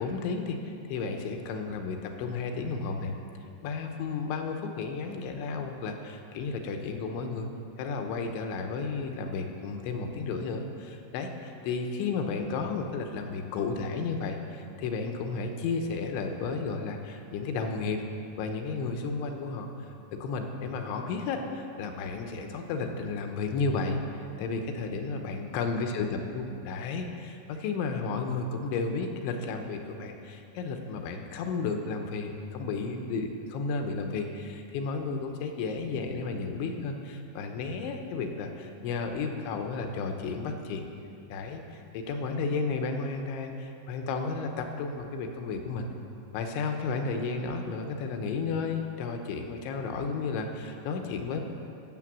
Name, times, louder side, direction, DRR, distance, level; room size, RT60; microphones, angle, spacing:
voice 1, 0.0-3.1 3.6-7.5 7.8-18.0 18.4-26.1 26.3-40.9 41.3-45.9 46.3-51.4, left 4 dB, 85° left, 4 dB, 3.2 m, -33 dB
15.5 x 6.7 x 7.5 m, 2.8 s
omnidirectional pair, 5.4 m